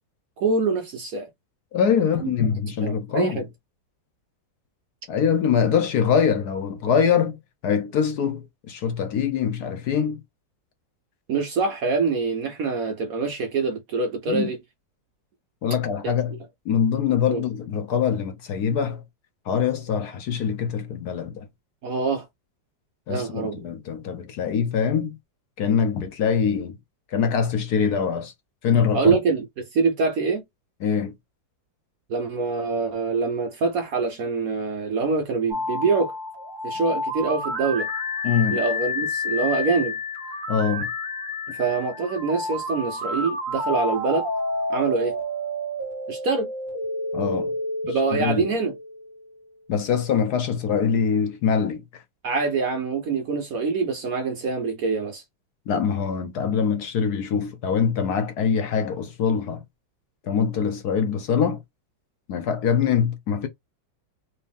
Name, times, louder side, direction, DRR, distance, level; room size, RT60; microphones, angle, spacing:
voice 1, 0.4-1.3 2.2-2.3 2.8-3.4 11.3-14.6 16.0-16.1 17.3-17.4 21.8-22.3 23.1-23.7 28.9-30.4 32.1-36.1 36.6-37.9 38.5-39.9 41.6-44.3 44.7-45.2 46.1-46.5 47.9-48.7 52.2-55.2, right 4 dB, 60° right, 0.9 m, -25 dB
voice 2, 1.7-3.4 5.1-7.4 7.6-10.2 14.3-14.5 15.6-16.3 16.7-19.0 19.5-21.5 23.1-25.1 25.6-26.8 27.1-28.3 28.6-29.2 30.8-31.1 38.2-38.6 40.5-40.9 47.1-47.5 48.1-48.5 49.7-51.8 55.7-59.6 60.3-61.6 62.3-63.5, left 7 dB, 65° left, 1.1 m, -23 dB
sound 1, 35.5-49.3, left 2 dB, 30° right, 1.6 m, -30 dB
3.4 x 2.9 x 3.5 m
omnidirectional pair, 2.1 m